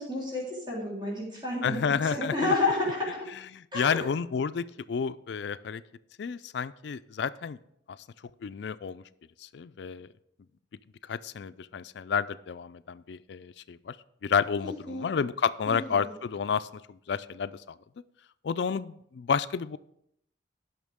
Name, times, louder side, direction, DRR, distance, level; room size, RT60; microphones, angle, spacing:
voice 1, 0.0-3.2 3.7-4.1 14.6-15.1 15.7-16.1, left 2 dB, 25° right, -7 dB, 3.7 m, -30 dB
voice 2, 1.6-2.5 3.5-5.8 6.2-7.6 7.9-8.0 8.4-9.0 9.4-10.1 11.0-14.0 14.2-17.8 18.4-19.8, left 6 dB, 65° left, 14 dB, 0.4 m, -30 dB
17.5 x 6.0 x 3.6 m, 0.74 s
head